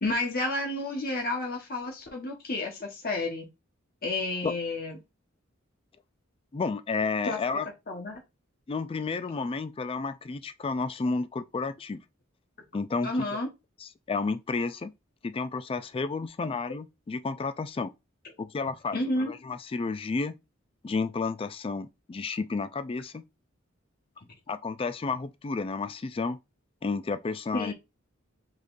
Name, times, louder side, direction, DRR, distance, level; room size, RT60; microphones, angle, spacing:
voice 1, 0.0-3.5 4.0-5.0 7.2-7.4 7.9-8.2 13.0-13.5 18.9-19.3 27.5-27.7, left 2 dB, 50° left, 1.3 m, -30 dB
voice 2, 6.5-7.7 8.7-12.0 12.7-13.1 13.8-14.9 15.2-17.9 18.4-20.3 20.8-23.2 24.5-26.4 26.8-27.7, left 4 dB, 25° left, 0.3 m, -31 dB
5.0 x 4.0 x 2.6 m
head